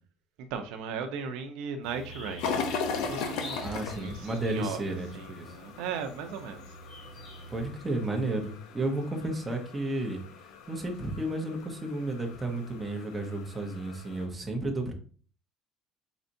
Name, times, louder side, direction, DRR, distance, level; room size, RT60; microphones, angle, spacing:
voice 1, 0.5-2.5 2.9-4.8 5.1-6.7, right 6 dB, 80° right, 0.6 m, -37 dB
sound 1, 1.8-7.7, equal, 45° left, 1.5 m, -46 dB
sound 2, 2.4-14.3, left 5 dB, 75° left, 0.7 m, -39 dB
voice 2, 3.6-5.6 7.5-10.2 10.7-14.9, right 2 dB, 15° right, 0.9 m, -32 dB
4.3 x 4.0 x 2.7 m
cardioid pair, 135°, 0 cm